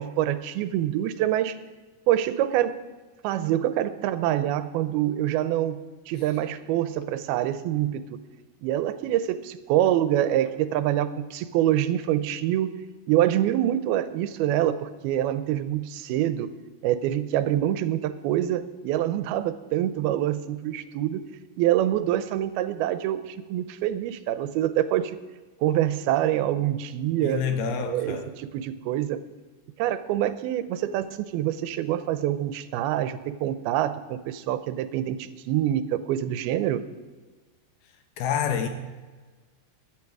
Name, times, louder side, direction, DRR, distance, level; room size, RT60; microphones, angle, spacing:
voice 1, 0.0-1.5 2.1-2.8 3.2-8.2 8.6-12.7 13.1-16.5 16.8-21.2 21.6-25.2 25.6-27.4 27.9-29.2 29.8-36.8, right 12 dB, 85° right, 13 dB, 2.6 m, -25 dB
voice 2, 27.2-28.3 38.2-38.7, left 7 dB, 85° left, 7 dB, 3.2 m, -27 dB
16.5 x 11.0 x 4.8 m, 1.4 s
omnidirectional pair, 4.3 m